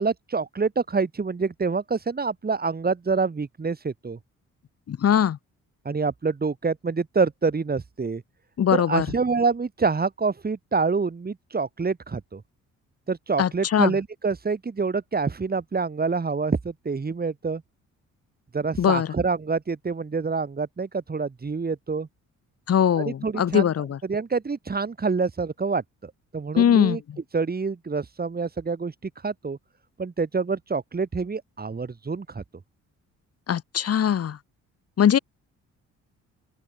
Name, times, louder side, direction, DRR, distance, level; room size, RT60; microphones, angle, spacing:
voice 1, 0.0-4.2 5.9-8.2 8.7-12.4 13.1-17.6 18.5-22.1 23.0-23.7 24.1-27.0 27.3-29.6 30.0-32.4, right 4 dB, 30° right, 7.3 m, -27 dB
voice 2, 4.9-5.4 8.6-9.1 13.4-13.9 18.8-19.1 22.7-24.0 26.6-27.2 33.5-34.4 35.0-35.2, left 9 dB, 55° left, 1.9 m, -21 dB
open air
cardioid pair, 90°, 30 cm